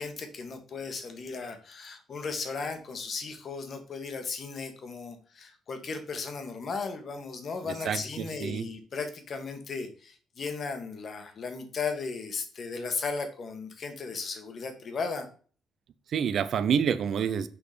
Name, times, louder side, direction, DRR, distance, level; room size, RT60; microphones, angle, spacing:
voice 1, 0.0-15.3, left 4 dB, 50° left, 1.5 m, -36 dB
voice 2, 7.9-8.7 16.1-17.5, right 7 dB, 65° right, 0.7 m, -28 dB
6.4 x 5.1 x 5.1 m
cardioid pair, 90°, 0 cm